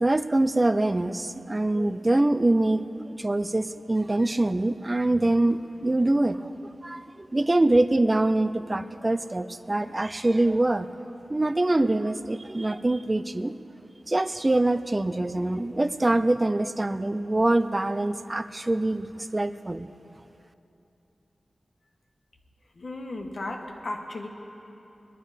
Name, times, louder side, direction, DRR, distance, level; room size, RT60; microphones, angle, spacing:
voice 1, 0.0-6.5 6.8-10.9 11.3-13.5 14.1-19.9, right 2 dB, 25° right, 13 dB, 0.4 m, -24 dB
voice 2, 22.7-24.3, left 2 dB, 60° left, 2 dB, 1.4 m, -35 dB
20.5 x 11.0 x 5.0 m, 2.9 s
wide cardioid pair, 115°, 0 cm